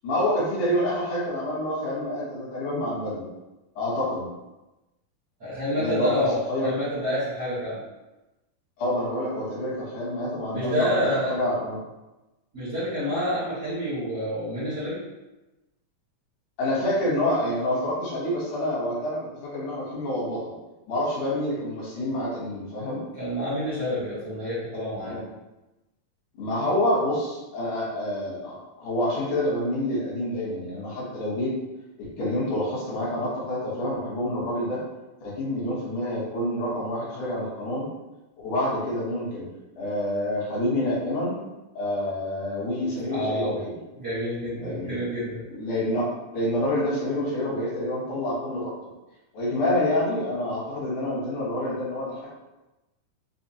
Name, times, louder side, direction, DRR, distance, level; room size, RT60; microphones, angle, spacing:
voice 1, 0.0-3.3 3.8-4.3 5.8-6.7 8.8-11.8 16.6-20.5 20.9-23.0 25.0-25.2 26.4-31.5 32.2-34.8 35.2-37.9 38.4-39.4 39.8-41.4 41.8-43.8 44.6-45.0 45.5-48.7 49.3-52.3, left 1 dB, 70° left, -6 dB, 2.4 m, -27 dB
voice 2, 5.4-7.8 10.5-11.4 12.5-15.0 23.1-25.2 43.1-43.6 43.9-45.4, left 1 dB, 60° right, -11 dB, 1.0 m, -28 dB
5.5 x 2.2 x 2.8 m, 1.0 s
omnidirectional pair, 3.9 m